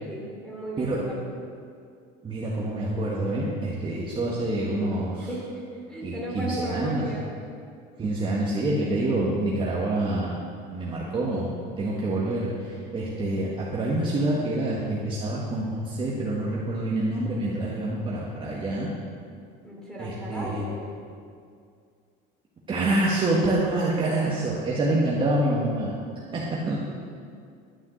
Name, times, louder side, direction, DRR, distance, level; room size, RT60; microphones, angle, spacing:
voice 1, 0.1-1.3 5.2-7.4 19.6-20.9, right 1 dB, 5° left, -4 dB, 3.1 m, -35 dB
voice 2, 2.2-5.3 6.0-7.0 8.0-10.4 10.7-11.5 11.8-18.9 20.0-20.7 22.7-26.0 26.3-26.8, right 2 dB, 25° right, -5 dB, 1.5 m, -27 dB
12.0 x 7.3 x 7.8 m, 2.3 s
cardioid pair, 160°, 21 cm